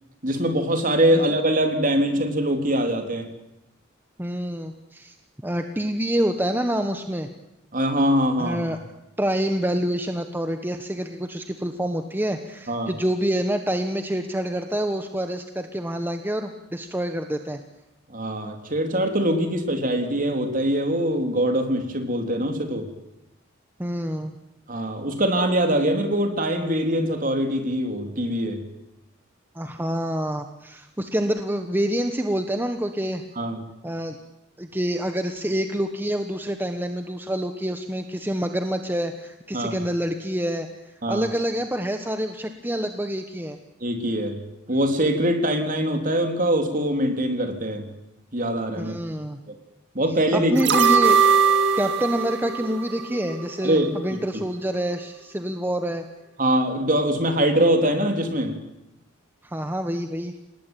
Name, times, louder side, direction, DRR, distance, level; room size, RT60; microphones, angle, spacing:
voice 1, 0.2-3.3 7.7-8.7 12.7-12.9 18.1-22.9 24.7-28.6 33.4-33.6 39.5-39.7 41.0-41.3 43.8-44.4 44.7-47.8 48.3-49.0 49.5-49.6 49.9-50.7 53.6-54.2 56.4-58.6, right 1 dB, 40° right, 5 dB, 3.7 m, -23 dB
voice 2, 4.2-5.1 5.4-7.3 8.4-8.8 9.2-17.6 23.8-24.3 29.5-33.2 33.8-34.2 34.6-40.7 41.1-43.6 48.8-49.4 50.3-51.2 51.8-56.0 59.4-60.3, equal, 10° right, 6 dB, 1.3 m, -27 dB
sound 1, 50.6-53.7 54.0-54.1, right 6 dB, 65° right, 2.8 m, -21 dB
28.5 x 19.5 x 9.3 m, 0.89 s
head